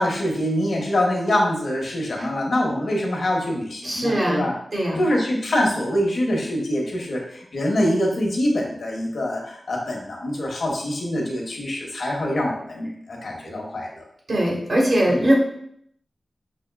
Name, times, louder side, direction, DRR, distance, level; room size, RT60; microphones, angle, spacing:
voice 1, 0.0-4.5 5.0-14.0 15.1-15.2, left 1 dB, 85° left, -1 dB, 0.8 m, -24 dB
voice 2, 3.8-5.1 14.3-15.3, right 1 dB, 65° right, -3 dB, 1.2 m, -21 dB
4.8 x 2.2 x 2.3 m, 0.69 s
cardioid pair, 45°, 0 cm